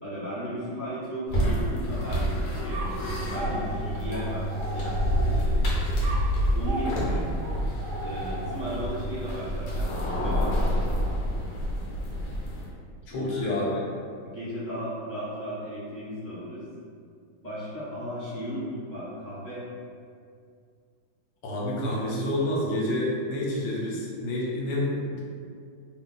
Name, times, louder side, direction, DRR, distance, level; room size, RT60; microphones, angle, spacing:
voice 1, 0.0-5.6 6.5-7.3 8.0-10.6 13.1-13.5 14.2-16.6 17.4-19.6, equal, 30° left, -12 dB, 0.9 m, -35 dB
sound 1, 1.3-12.7, equal, 70° left, 1.4 m, -28 dB
sound 2, 2.7-5.6 6.0-8.9, right 1 dB, 80° right, 0.6 m, -37 dB
voice 2, 13.1-13.9 21.4-25.2, left 1 dB, 85° left, -4 dB, 1.5 m, -28 dB
3.1 x 2.5 x 3.7 m, 2.3 s
omnidirectional pair, 2.1 m